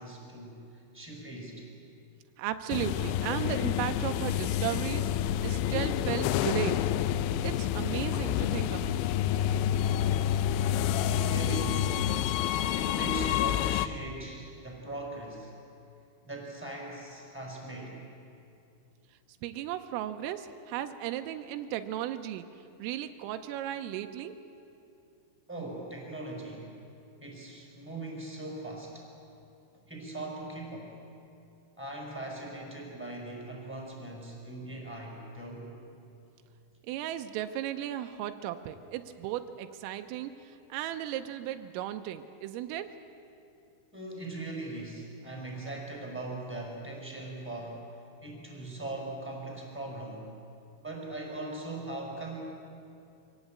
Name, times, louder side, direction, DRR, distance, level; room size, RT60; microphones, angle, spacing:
voice 1, 0.0-1.7 11.1-12.0 12.7-15.5 16.2-18.0 25.5-26.7 27.2-29.1 29.9-31.0 31.8-35.7 43.9-50.3 50.8-52.4, right 2 dB, 5° right, -1 dB, 3.8 m, -40 dB
voice 2, 2.4-6.9 7.4-9.0 19.4-22.5 22.8-24.4 36.8-42.9, right 12 dB, 90° right, 8 dB, 3.4 m, -35 dB
sound 1, 2.7-13.9, left 10 dB, 85° left, 2.6 m, -28 dB
24.0 x 17.0 x 8.7 m, 2.7 s
omnidirectional pair, 5.8 m